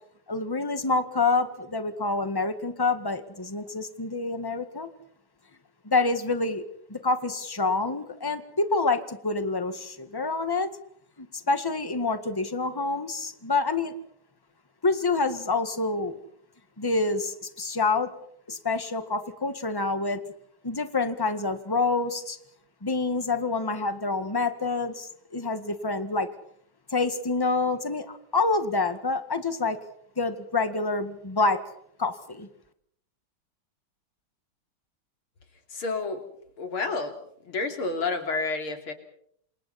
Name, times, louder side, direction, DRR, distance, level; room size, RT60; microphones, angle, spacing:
voice 1, 0.3-4.9 5.8-6.6 6.9-10.7 11.2-13.9 14.8-16.2 16.8-18.1 18.5-20.2 20.6-22.4 22.8-26.3 26.9-29.8 30.2-31.6 32.0-32.5, left 3 dB, 10° left, 9 dB, 1.6 m, -27 dB
voice 2, 35.7-36.2 36.6-37.1 37.4-38.9, left 3 dB, 75° left, 5 dB, 4.0 m, -29 dB
28.5 x 27.5 x 4.3 m, 0.68 s
omnidirectional pair, 2.3 m